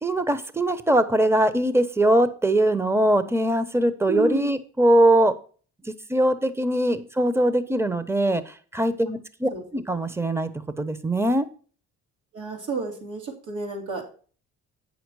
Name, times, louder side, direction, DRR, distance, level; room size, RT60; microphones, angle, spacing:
voice 1, 0.0-5.3 5.8-10.5 10.8-11.5, right 1 dB, 10° right, 13 dB, 0.8 m, -22 dB
voice 2, 4.1-4.5 9.5-9.6 12.3-14.0, right 3 dB, 75° right, 1 dB, 2.9 m, -31 dB
8.9 x 6.5 x 4.7 m, 0.40 s
cardioid pair, 90°, 30 cm